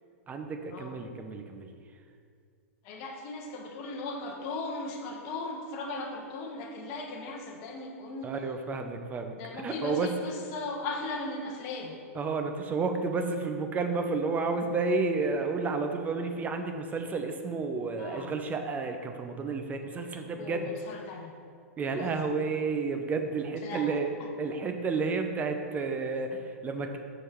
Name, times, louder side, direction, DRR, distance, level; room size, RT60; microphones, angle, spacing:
voice 1, 0.3-1.7 8.2-9.4 9.6-10.1 12.1-20.7 21.8-24.1 24.4-27.0, right 4 dB, 20° right, 6 dB, 0.6 m, -31 dB
voice 2, 2.8-8.3 9.4-12.0 18.0-18.3 20.4-21.3 22.0-22.1 23.6-23.8, left 2 dB, 45° left, 0 dB, 0.9 m, -37 dB
6.3 x 5.0 x 4.4 m, 2.2 s
hypercardioid pair, 115°, 8 cm